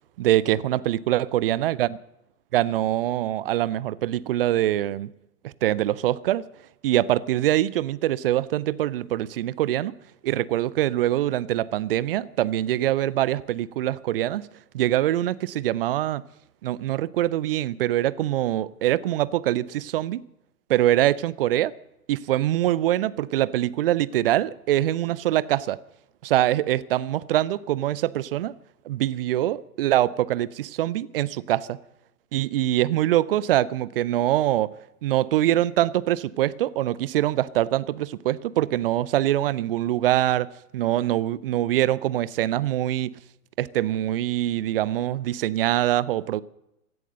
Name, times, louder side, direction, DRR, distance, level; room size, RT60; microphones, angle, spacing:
voice 1, 0.2-1.9 2.5-5.1 5.4-6.5 6.8-10.0 10.2-14.4 14.7-16.2 16.6-20.2 20.7-21.7 22.1-25.8 26.2-28.6 28.9-31.8 32.3-34.8 35.0-43.1 43.6-46.4, right 13 dB, 40° right, 0.6 m, -24 dB
16.5 x 11.0 x 7.8 m
figure-of-eight pair, 115°, 46 cm